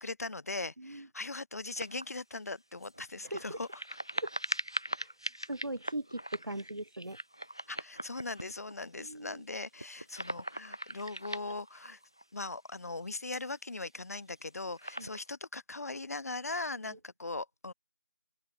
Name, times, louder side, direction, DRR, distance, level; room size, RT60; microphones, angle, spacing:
voice 1, 0.0-3.7 7.7-12.0 12.3-17.7, left 3 dB, 45° left, 0.8 m, -40 dB
sound 1, 1.8-2.2 2.8-8.7 9.3-9.4 9.6-12.2 13.2-13.8 14.4-15.3, right 1 dB, 15° left, 0.3 m, -41 dB
voice 2, 3.2-3.6 4.2-4.3 5.0-5.1 5.4-7.2 9.0-9.4 15.0-15.1 16.9-17.0, right 1 dB, 75° right, 2.4 m, -40 dB
open air
figure-of-eight pair, 165°, 11 cm